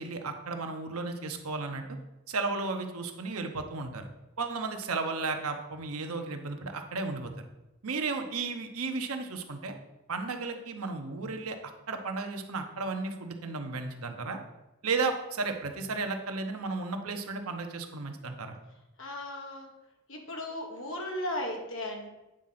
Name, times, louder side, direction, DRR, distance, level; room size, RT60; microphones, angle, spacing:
voice 1, 0.0-1.8 2.3-4.1 4.4-7.3 7.8-9.7 10.1-11.6 11.9-14.4 14.8-18.6, right 3 dB, 90° right, 5 dB, 0.9 m, -34 dB
voice 2, 19.0-19.7 20.1-22.1, left 1 dB, 65° left, 2 dB, 1.5 m, -36 dB
9.0 x 3.7 x 5.8 m, 0.97 s
head